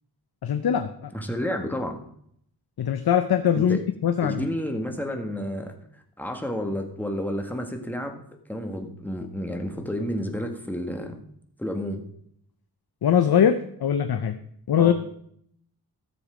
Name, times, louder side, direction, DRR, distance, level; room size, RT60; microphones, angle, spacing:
voice 1, 0.4-1.1 2.8-4.5 13.0-14.4 14.7-14.9, left 8 dB, 65° left, 9 dB, 0.7 m, -22 dB
voice 2, 1.1-2.0 3.5-3.8 4.2-8.2 8.5-11.2 11.6-12.0 14.8-14.9, equal, 5° left, 3 dB, 1.6 m, -30 dB
13.5 x 7.0 x 5.0 m, 0.68 s
wide cardioid pair, 105°, 40 cm